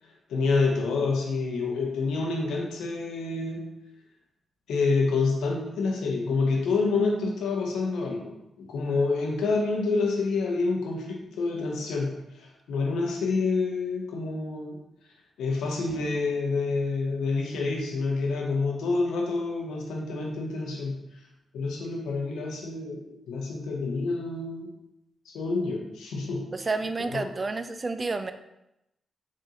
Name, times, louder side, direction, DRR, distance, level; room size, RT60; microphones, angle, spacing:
voice 1, 0.3-3.8 4.7-14.8 15.4-21.0 21.5-23.0 23.3-24.7 25.3-26.5 27.1-27.2, left 3 dB, 80° left, 0 dB, 0.6 m, -28 dB
voice 2, 26.5-28.3, right 3 dB, 40° right, 9 dB, 0.3 m, -30 dB
3.7 x 2.5 x 2.8 m, 0.86 s
hypercardioid pair, 40°, 0 cm